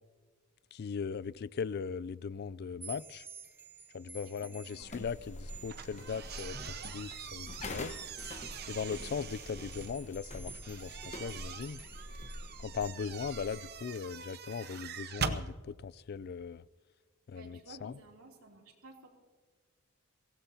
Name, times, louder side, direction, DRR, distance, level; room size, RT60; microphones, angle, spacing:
voice 1, 0.7-3.3 3.9-8.0 8.7-11.8 12.6-16.6 17.3-18.0, left 6 dB, 50° left, 0.3 m, -39 dB
sound 1, 2.8-12.9, right 6 dB, 10° right, 0.7 m, -53 dB
voice 2, 4.2-4.9 17.3-19.1, right 2 dB, 85° right, 3.1 m, -54 dB
sound 2, 4.8-13.7, left 1 dB, 30° left, 1.2 m, -46 dB
sound 3, 5.7-9.9 10.6-15.4, right 6 dB, 50° right, 0.8 m, -43 dB
23.5 x 17.0 x 2.8 m
head